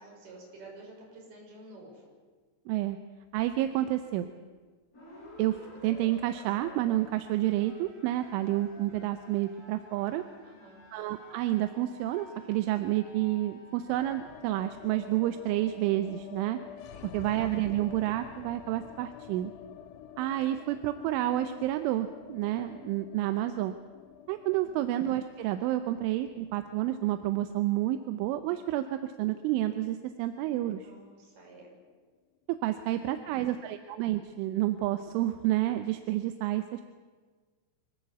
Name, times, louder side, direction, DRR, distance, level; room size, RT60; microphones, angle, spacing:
voice 1, 0.0-2.0 10.4-10.8 16.9-17.3 24.6-25.0 30.8-31.8 32.8-33.6, right 2 dB, 55° right, -2 dB, 7.9 m, -51 dB
voice 2, 2.7-3.0 3.3-4.3 5.4-5.6 5.8-10.2 10.9-16.6 17.0-19.5 20.2-23.8 24.3-30.9 32.6-36.8, right 14 dB, 85° right, 9 dB, 3.3 m, -29 dB
sound 1, 4.9-19.3, left 1 dB, 15° left, 7.4 m, -54 dB
sound 2, 13.9-30.0 30.2-30.3 30.6-31.3, left 9 dB, 75° left, 2.7 m, -49 dB
25.0 x 17.5 x 8.2 m, 1.4 s
omnidirectional pair, 5.5 m